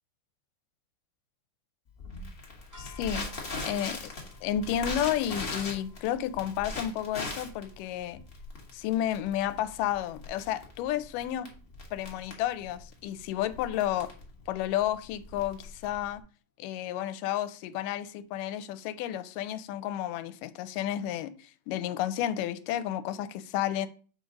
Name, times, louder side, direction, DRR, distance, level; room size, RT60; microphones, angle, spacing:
Crackle, 2.0-16.2, left 3 dB, 30° left, 1.0 m, -40 dB
sound 1, 2.7-9.1, left 3 dB, 10° right, 1.2 m, -58 dB
voice 1, 2.8-3.3 3.6-4.1 4.4-8.2 8.7-11.5 11.9-14.1 14.5-16.2 16.6-23.3 23.5-23.9, left 11 dB, 85° left, 2.2 m, -31 dB
7.3 x 3.9 x 5.1 m
omnidirectional pair, 3.7 m